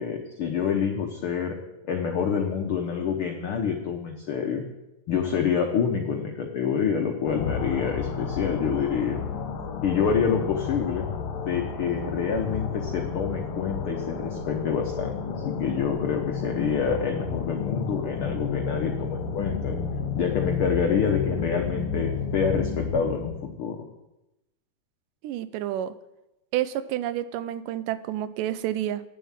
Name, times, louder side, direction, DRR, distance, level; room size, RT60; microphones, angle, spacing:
voice 1, 0.0-1.5 1.9-4.6 5.1-9.2 9.8-11.1 11.4-19.8 20.1-23.8, left 6 dB, 85° left, 3 dB, 1.2 m, -27 dB
sound 1, 7.3-23.5, left 5 dB, 65° left, 2.0 m, -32 dB
voice 2, 25.2-25.9 26.5-29.0, right 12 dB, 85° right, 14 dB, 2.2 m, -29 dB
10.0 x 7.4 x 7.3 m, 0.95 s
omnidirectional pair, 3.7 m